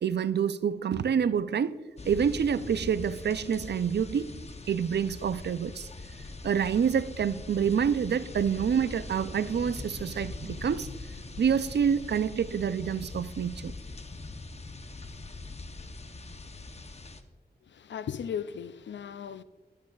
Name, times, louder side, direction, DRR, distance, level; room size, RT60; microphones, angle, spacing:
voice 1, 0.0-1.8 2.1-4.3 4.7-5.9 6.4-10.9 11.4-13.7, right 7 dB, 70° right, 0.4 m, -27 dB
sound 1, 2.0-17.2, left 3 dB, 35° left, 0.8 m, -42 dB
voice 2, 17.6-19.4, left 8 dB, 85° left, 0.4 m, -37 dB
17.0 x 8.7 x 2.3 m
cardioid pair, 50°, 18 cm